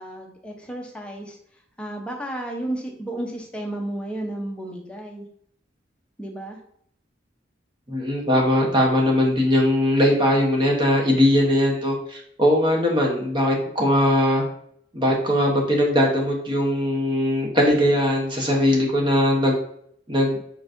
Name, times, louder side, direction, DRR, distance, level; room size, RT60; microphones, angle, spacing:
voice 1, 0.0-1.4 1.8-5.3 6.2-6.6, right 1 dB, 5° left, -1 dB, 0.7 m, -32 dB
voice 2, 7.9-14.4 14.9-19.6 20.1-20.4, left 1 dB, 25° right, 0 dB, 0.9 m, -20 dB
4.5 x 3.9 x 2.5 m, 0.67 s
head